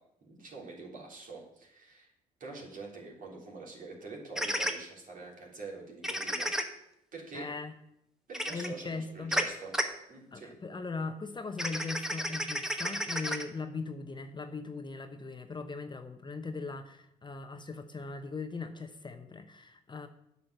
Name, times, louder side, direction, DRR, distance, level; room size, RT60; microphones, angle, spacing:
voice 1, 0.2-2.1 2.4-6.5 7.1-7.5 8.3-9.7 10.1-10.5, right 3 dB, 55° right, -2 dB, 3.7 m, -45 dB
sound 1, 4.4-4.7 6.0-6.6 8.3-8.7 9.3-9.4 9.7-9.8 11.6-13.4, equal, 5° right, 1.3 m, -31 dB
voice 2, 7.3-7.7 8.5-9.4 10.3-20.1, left 4 dB, 25° left, 8 dB, 1.0 m, -39 dB
8.8 x 5.6 x 8.1 m, 0.80 s
hypercardioid pair, 60°, 17 cm